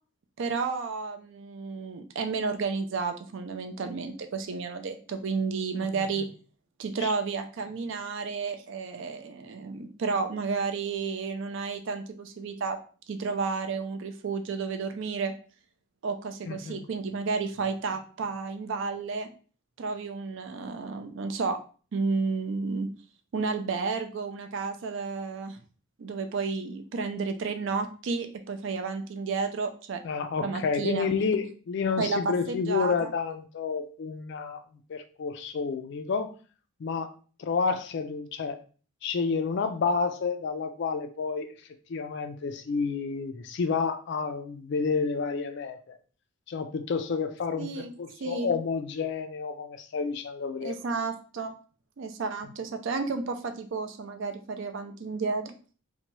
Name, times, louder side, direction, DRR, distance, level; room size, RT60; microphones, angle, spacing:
voice 1, 0.4-6.3 6.8-12.8 13.1-15.3 16.0-19.3 19.8-21.6 21.9-22.9 23.3-25.6 26.0-30.0 30.4-31.1 32.0-33.1 47.6-47.9 48.2-48.5 50.6-51.5 52.0-55.5, right 4 dB, 55° right, 7 dB, 0.4 m, -31 dB
voice 2, 5.8-6.3 7.0-7.1 16.5-16.8 30.0-34.6 34.9-36.4 36.8-37.1 37.4-38.6 39.0-41.5 41.9-46.0 46.5-50.7, left 5 dB, 50° left, 9 dB, 0.3 m, -30 dB
2.8 x 2.2 x 3.0 m, 0.39 s
head